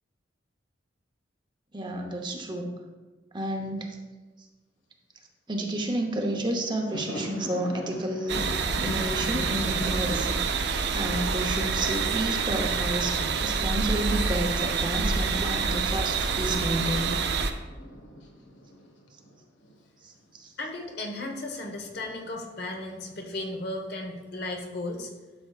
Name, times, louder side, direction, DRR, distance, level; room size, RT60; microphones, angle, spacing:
voice 1, 1.7-2.7 3.3-4.0 5.5-8.4 8.8-17.2 20.3-20.5, right 1 dB, 25° right, 2 dB, 0.9 m, -31 dB
Thunder, 6.1-6.2 6.5-15.3 15.6-19.9 20.1-20.3 21.5-22.2, equal, 80° left, 1.4 m, -42 dB
sound 1, 8.3-17.5, right 5 dB, 60° right, 0.6 m, -27 dB
voice 2, 20.6-25.1, left 2 dB, 60° left, 2 dB, 1.2 m, -35 dB
12.0 x 6.7 x 2.4 m, 1.3 s
head